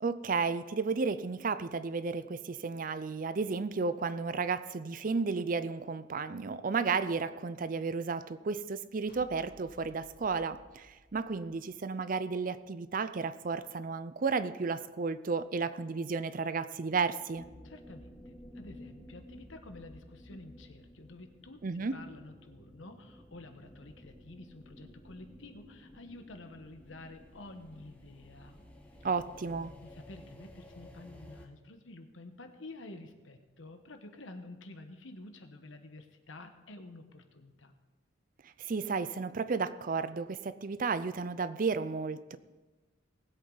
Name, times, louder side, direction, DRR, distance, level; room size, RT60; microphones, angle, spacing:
voice 1, 0.0-17.5 21.6-22.0 29.0-29.7 38.4-42.4, right 4 dB, 45° right, 14 dB, 0.5 m, -33 dB
sound 1, 9.1-12.3, left 1 dB, 50° left, 2.2 m, -60 dB
sound 2, 17.3-31.5, left 1 dB, 5° left, 1.2 m, -53 dB
voice 2, 17.6-28.6 29.8-37.7, left 2 dB, 75° left, 7 dB, 1.2 m, -50 dB
19.5 x 8.1 x 4.0 m, 1.2 s
head